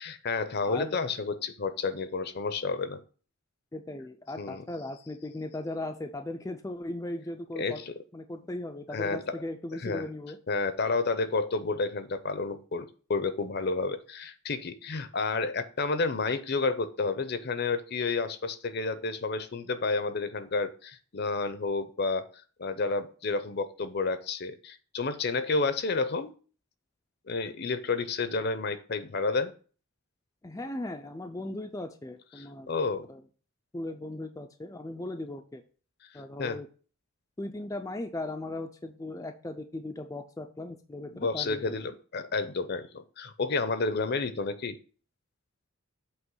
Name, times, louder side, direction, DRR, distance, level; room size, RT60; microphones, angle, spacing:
voice 1, 0.0-3.0 4.4-4.6 7.6-7.9 8.9-9.4 9.8-10.0 10.5-22.3 22.6-26.3 27.3-29.5 32.4-33.1 36.4-36.6 41.1-44.8, left 4 dB, 50° left, 11 dB, 0.7 m, -30 dB
voice 2, 0.6-1.0 3.7-7.8 8.1-10.4 30.4-32.7 33.1-33.2 33.7-35.6 36.1-36.7 37.4-41.7, left 2 dB, 15° left, 4 dB, 0.4 m, -38 dB
8.0 x 3.0 x 6.1 m, 0.39 s
head